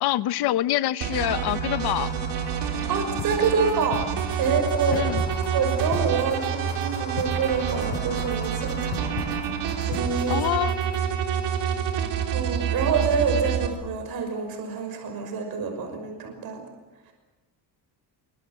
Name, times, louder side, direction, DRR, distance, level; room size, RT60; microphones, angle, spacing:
voice 1, 0.0-2.1 4.9-5.2 10.3-10.8, left 14 dB, 65° left, 0.9 m, -25 dB
sound 1, 1.0-13.7, right 8 dB, 80° right, 3.6 m, -28 dB
sound 2, 1.2-10.0, left 3 dB, 25° left, 5.4 m, -42 dB
voice 2, 2.9-4.0 4.4-5.1 5.5-9.2 9.9-10.4 12.3-16.6, right 5 dB, 60° right, 5.8 m, -26 dB
sound 3, 3.2-11.2, left 6 dB, 85° left, 7.2 m, -39 dB
26.5 x 24.5 x 7.8 m
cardioid pair, 175°, 41 cm